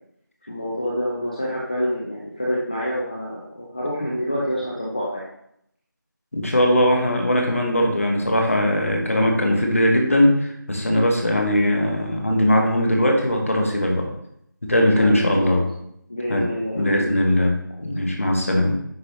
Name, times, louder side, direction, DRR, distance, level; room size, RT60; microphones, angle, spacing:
voice 1, 0.5-5.3 15.0-15.6 16.1-17.1, equal, 25° left, -6 dB, 0.9 m, -27 dB
voice 2, 6.3-14.1 14.6-15.7 16.3-16.5 16.7-17.5 17.8-18.8, left 1 dB, 40° left, 2 dB, 1.5 m, -20 dB
9.5 x 5.3 x 3.1 m, 0.73 s
figure-of-eight pair, 170°, 11 cm